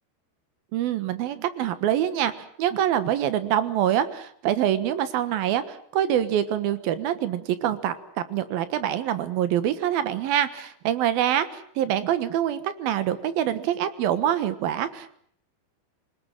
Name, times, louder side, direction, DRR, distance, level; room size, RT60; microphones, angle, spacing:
voice 1, 0.7-8.0 8.3-15.1, right 11 dB, 65° right, 12 dB, 2.7 m, -25 dB
25.5 x 20.0 x 8.9 m, 0.63 s
omnidirectional pair, 5.4 m